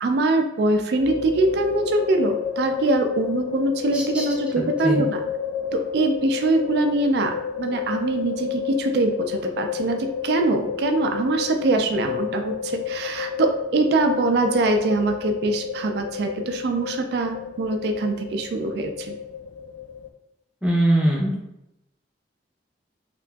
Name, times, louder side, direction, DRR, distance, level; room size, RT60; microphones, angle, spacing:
voice 1, 0.0-5.2 5.7-19.1, right 2 dB, 60° right, 5 dB, 0.3 m, -23 dB
sound 1, 1.0-20.1, left 7 dB, 85° left, 0.3 m, -31 dB
voice 2, 3.9-4.2 4.8-5.0 20.6-21.4, right 1 dB, 5° right, -3 dB, 0.5 m, -21 dB
2.8 x 2.5 x 2.3 m, 0.87 s
head